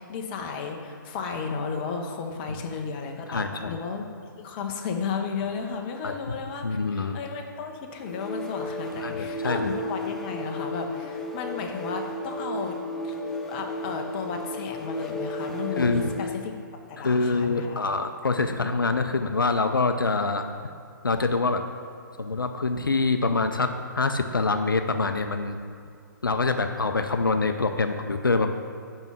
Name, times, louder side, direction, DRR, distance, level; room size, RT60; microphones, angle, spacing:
voice 1, 0.0-4.1 4.4-13.1 13.5-16.5 16.9-17.8, left 5 dB, 30° left, 3 dB, 0.7 m, -34 dB
voice 2, 3.3-3.8 6.0-6.1 6.6-7.2 9.0-9.6 15.8-16.1 17.0-20.5 21.0-21.6 22.2-25.6 26.2-28.5, left 3 dB, 80° left, 7 dB, 0.5 m, -25 dB
sound 1, 8.0-16.4, left 1 dB, 5° left, 0.4 m, -33 dB
5.4 x 5.3 x 6.1 m, 2.3 s
figure-of-eight pair, 130°, 11 cm